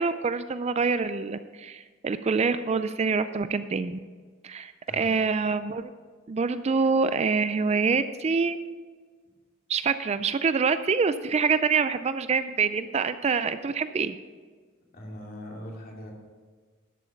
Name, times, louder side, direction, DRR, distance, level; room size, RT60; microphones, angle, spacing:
voice 1, 0.0-4.0 4.4-5.9 6.3-8.6 9.7-14.2, right 5 dB, 30° right, 12 dB, 0.4 m, -26 dB
voice 2, 14.9-16.1, equal, 45° left, -1 dB, 2.7 m, -40 dB
12.5 x 7.8 x 5.7 m, 1.5 s
head